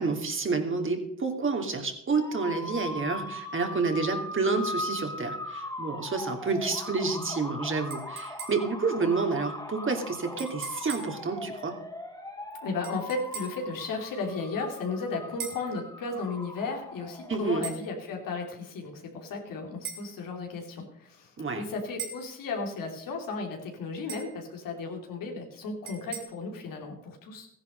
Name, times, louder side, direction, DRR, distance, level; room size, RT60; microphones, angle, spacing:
voice 1, 0.0-11.8 17.3-17.7 21.4-21.6, right 4 dB, 40° right, 4 dB, 2.8 m, -29 dB
sound 1, 2.1-17.6, left 2 dB, 10° left, 2.8 m, -39 dB
sound 2, 7.9-8.8 10.4-11.2 12.8-13.7 15.4-15.7 17.6-17.8 19.8-20.1 22.0-22.3 24.1-24.4 25.9-26.2, right 7 dB, 85° right, 3.2 m, -40 dB
voice 2, 12.6-27.5, left 3 dB, 80° left, 2 dB, 3.1 m, -35 dB
14.5 x 10.5 x 5.3 m, 0.72 s
supercardioid pair, 70°, 33 cm